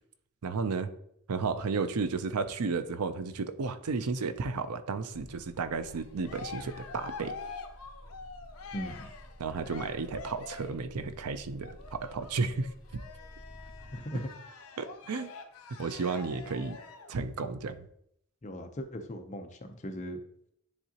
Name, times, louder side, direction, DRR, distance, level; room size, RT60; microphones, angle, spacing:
voice 1, 0.4-0.9 1.3-7.3 9.4-13.0 14.8-15.3 15.8-16.8 17.1-17.9, right 4 dB, 85° right, 11 dB, 0.5 m, -33 dB
sound 1, 5.1-14.0, equal, ahead, 2.5 m, -52 dB
Cheering, 5.8-10.9 11.6-17.2, left 4 dB, 75° left, 0.7 m, -46 dB
voice 2, 8.7-9.1 13.9-14.3 18.4-20.2, equal, 30° left, 5 dB, 0.7 m, -38 dB
9.7 x 3.7 x 2.9 m, 0.71 s
head